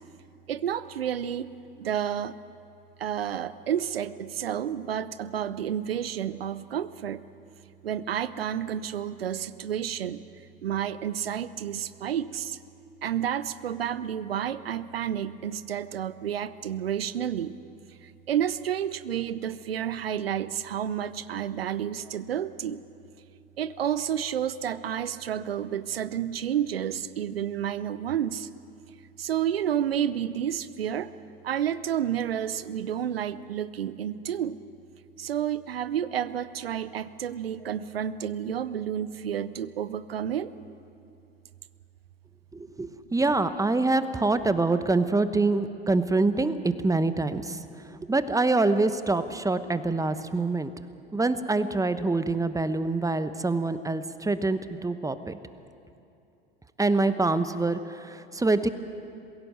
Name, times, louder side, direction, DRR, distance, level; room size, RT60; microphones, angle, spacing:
voice 1, 0.5-1.5 1.8-2.4 3.0-7.2 7.8-10.2 10.6-12.6 13.0-17.5 18.0-22.8 23.6-28.5 29.2-31.1 31.4-34.6 35.2-40.5 42.8-43.2, right 9 dB, 85° right, 16 dB, 0.6 m, -30 dB
voice 2, 42.5-47.6 48.1-50.7 51.1-55.4 56.8-58.7, right 3 dB, 10° right, 12 dB, 1.0 m, -25 dB
22.0 x 16.5 x 7.7 m, 2.6 s
hypercardioid pair, 70°, 29 cm